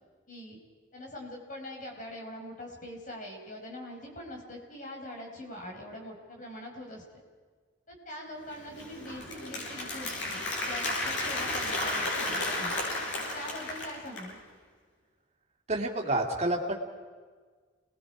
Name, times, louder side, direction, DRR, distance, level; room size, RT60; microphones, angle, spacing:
voice 1, 0.3-0.6 0.9-7.0 7.9-12.8 13.2-14.4, left 1 dB, 40° left, 0 dB, 5.1 m, -43 dB
Applause, 8.5-14.3, left 2 dB, 70° left, 7.8 m, -33 dB
voice 2, 15.7-16.8, right 2 dB, 35° right, 0 dB, 2.6 m, -28 dB
29.0 x 21.0 x 5.0 m, 1.5 s
head